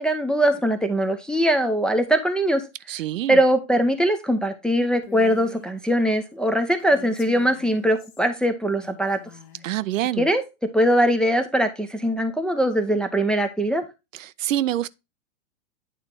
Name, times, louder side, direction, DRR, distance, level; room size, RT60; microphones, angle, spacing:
voice 1, 0.0-2.6 3.3-9.2 10.2-10.4 10.7-13.8, equal, ahead, 0.4 m, -21 dB
voice 2, 2.9-3.4 9.6-10.3 14.1-14.9, right 13 dB, 75° right, 0.5 m, -26 dB
Female speech woman speaking, 5.0-5.7 6.8-8.3 8.8-9.7, left 6 dB, 55° left, 1.4 m, -44 dB
9.0 x 3.6 x 4.3 m
hypercardioid pair, 105°, 40 cm